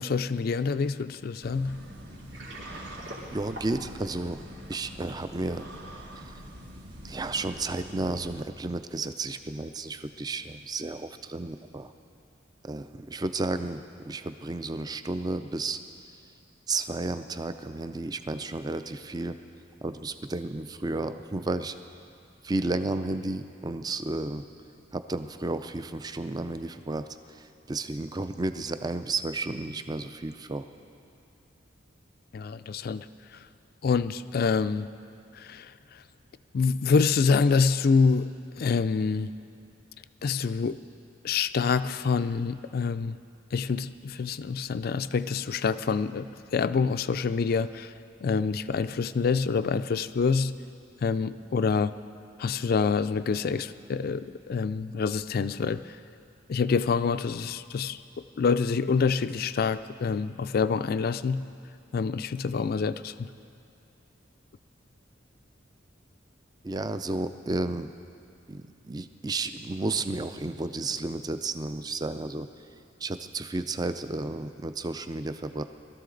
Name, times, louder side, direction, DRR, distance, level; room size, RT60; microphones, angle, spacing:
voice 1, 0.0-1.8 32.3-33.1 33.8-34.9 35.3-35.7 36.5-38.3 38.6-39.3 40.2-40.8 41.2-43.2 43.5-47.9 48.2-50.5 51.0-52.0 52.4-56.0 56.5-58.0 58.4-61.4 61.9-63.3, left 5 dB, 50° left, 13 dB, 0.4 m, -26 dB
sound 1, 1.4-8.4, equal, 60° right, 1.5 m, -45 dB
Water, 2.1-5.3, right 1 dB, 90° right, 2.7 m, -44 dB
voice 2, 3.3-4.4 4.7-5.7 6.2-6.3 7.0-11.9 12.6-15.8 16.7-19.4 19.8-21.8 22.4-24.5 24.9-30.6 66.6-67.9 68.5-72.5 73.0-75.6, right 2 dB, 20° right, 10 dB, 0.4 m, -32 dB
21.5 x 13.5 x 3.9 m, 2.5 s
head